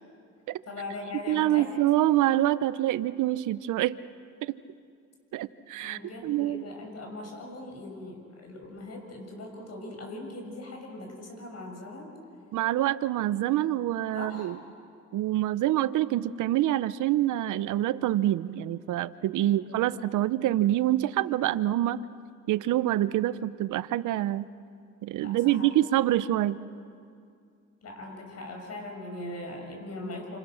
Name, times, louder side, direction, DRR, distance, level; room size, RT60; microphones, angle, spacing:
voice 1, 0.7-1.7 5.8-12.1 14.1-14.6 19.4-19.8 25.2-25.8 27.8-30.4, left 2 dB, 55° left, 2 dB, 6.9 m, -40 dB
voice 2, 1.3-4.0 4.4-4.6 5.3-6.6 12.5-14.6 15.1-22.0 22.5-24.5 25.0-26.6, right 14 dB, 85° right, 15 dB, 0.8 m, -26 dB
29.0 x 28.0 x 6.4 m, 2.3 s
cardioid pair, 90°, 30 cm